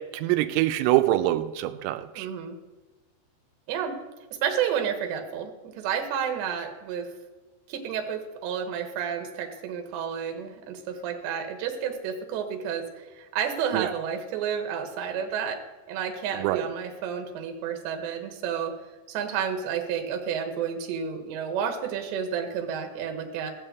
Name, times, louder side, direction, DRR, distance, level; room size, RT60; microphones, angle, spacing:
voice 1, 0.1-2.3 13.7-13.9 16.3-16.7, right 15 dB, 85° right, 9 dB, 3.3 m, -24 dB
voice 2, 2.1-2.6 3.7-4.0 4.3-7.1 7.7-15.6 15.9-18.7 19.1-23.5, right 7 dB, 70° right, 4 dB, 3.2 m, -31 dB
16.5 x 5.5 x 8.0 m, 1.2 s
omnidirectional pair, 5.9 m